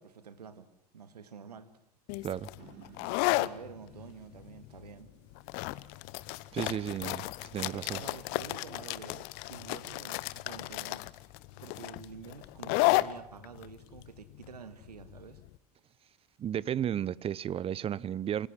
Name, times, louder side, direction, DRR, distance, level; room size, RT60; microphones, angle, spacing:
voice 1, 0.0-1.7 3.2-5.1 7.7-11.0 11.6-15.4 17.0-17.2, right 6 dB, 80° right, 2.0 m, -48 dB
sound 1, 2.1-15.5, left 20 dB, 55° left, 1.0 m, -33 dB
sound 2, 2.6-7.6, right 9 dB, 50° right, 3.7 m, -59 dB
voice 2, 6.5-7.3 7.5-8.0 16.4-18.5, right 10 dB, 30° right, 0.8 m, -33 dB
28.0 x 17.5 x 7.5 m
figure-of-eight pair, 80°, 20 cm